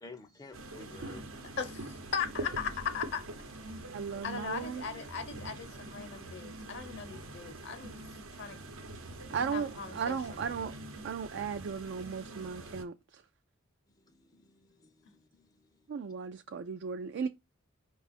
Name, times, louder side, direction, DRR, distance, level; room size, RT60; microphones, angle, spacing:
voice 1, 0.0-1.6 14.0-15.7, left 3 dB, 20° left, 0.4 m, -53 dB
sound 1, 0.5-12.8, right 2 dB, 90° right, 0.9 m, -44 dB
voice 2, 1.6-3.2 4.2-8.0 8.4-8.6 9.5-10.2 10.4-10.6, left 6 dB, 60° left, 0.7 m, -38 dB
voice 3, 3.9-4.8 9.3-10.7 11.0-13.2 15.9-17.3, right 6 dB, 60° right, 0.3 m, -36 dB
5.0 x 2.4 x 4.0 m
head